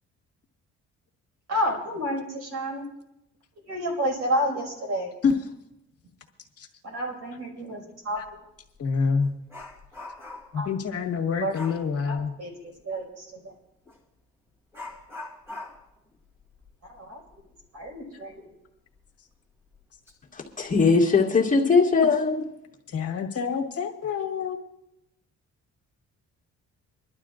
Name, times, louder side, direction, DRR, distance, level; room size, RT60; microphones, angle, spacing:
voice 1, 1.5-2.9 3.7-5.1 6.8-8.2 10.5-10.7 11.4-11.5 12.1-13.5 16.9-17.2 17.7-18.5, equal, 55° right, 0 dB, 5.4 m, -30 dB
voice 2, 5.2-5.5 6.6-6.7 8.1-8.3 8.8-9.3 10.5-12.3 18.1-18.2 22.0-22.1 22.9-24.6, left 5 dB, 50° left, 1 dB, 1.8 m, -27 dB
Dog, 8.2-8.3 8.7-10.7 11.5-11.9 13.8-14.0 14.7-18.0 18.3-18.4 19.0-19.1 19.7-20.1 20.5-20.7, left 2 dB, 10° right, 3.0 m, -43 dB
voice 3, 20.3-22.4, left 4 dB, 25° left, -3 dB, 2.1 m, -20 dB
26.0 x 11.5 x 2.6 m, 0.85 s
cardioid pair, 90°, 30 cm